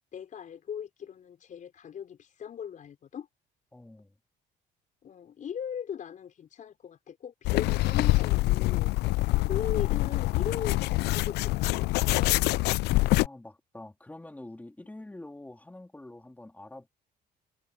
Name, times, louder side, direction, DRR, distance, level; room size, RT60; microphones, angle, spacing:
voice 1, 0.1-3.3 5.0-12.6, left 8 dB, 50° left, 5.5 m, -39 dB
voice 2, 3.7-4.1 13.2-16.9, left 1 dB, 10° left, 3.4 m, -46 dB
sound 1, 7.4-13.3, left 19 dB, 75° left, 0.4 m, -25 dB
cardioid pair, 110°, 17 cm